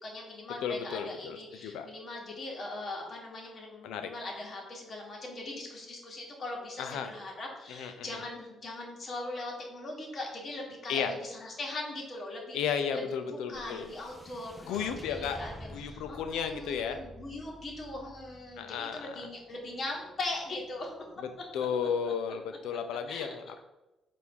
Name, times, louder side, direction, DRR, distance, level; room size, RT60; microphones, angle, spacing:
voice 1, 0.0-12.6 12.9-13.0 13.3-20.9 23.1-23.3, left 2 dB, 45° left, -1 dB, 1.2 m, -40 dB
voice 2, 0.6-1.9 3.8-4.1 6.8-7.1 7.7-8.2 10.9-11.1 12.5-13.9 14.7-15.4 15.7-17.0 18.6-19.2 21.5-23.6, left 7 dB, 90° left, 8 dB, 0.4 m, -33 dB
sound 1, 13.5-21.9, equal, 10° right, 0.4 m, -50 dB
4.5 x 2.6 x 3.5 m, 1.0 s
cardioid pair, 90°, 0 cm